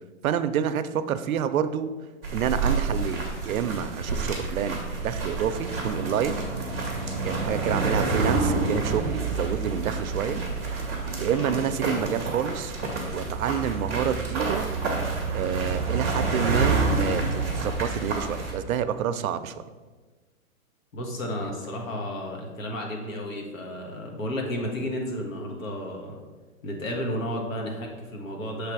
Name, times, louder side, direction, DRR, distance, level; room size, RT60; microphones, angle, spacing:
voice 1, 0.2-1.9 2.3-6.4 7.2-10.4 11.2-12.7 13.1-14.7 15.3-19.6, right 8 dB, 80° right, 11 dB, 0.6 m, -28 dB
sound 1, 2.2-18.5, right 3 dB, 5° left, 0.5 m, -28 dB
voice 2, 20.9-26.2 26.6-28.7, equal, 70° left, 1 dB, 1.6 m, -32 dB
6.9 x 3.4 x 4.6 m, 1.3 s
hypercardioid pair, 175°, 41 cm